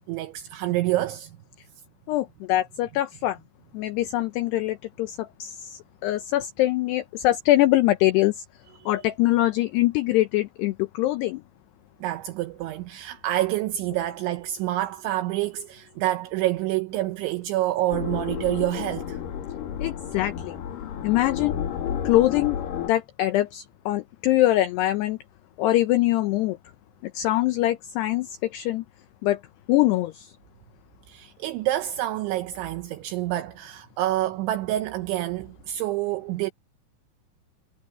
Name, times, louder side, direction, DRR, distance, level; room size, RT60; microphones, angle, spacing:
voice 1, 0.1-1.3 8.8-8.9 12.0-19.2 31.1-36.5, right 15 dB, 80° right, 3.1 m, -27 dB
voice 2, 2.1-3.4 3.7-8.3 8.9-11.4 19.8-20.6 21.0-21.5 22.0-22.6 22.9-25.2 25.6-26.6 27.0-28.3 28.5-28.8 29.2-29.4 29.7-30.3, left 15 dB, 90° left, 2.3 m, -23 dB
sound 1, 17.9-22.9, left 9 dB, 55° left, 3.0 m, -31 dB
omnidirectional pair, 5.8 m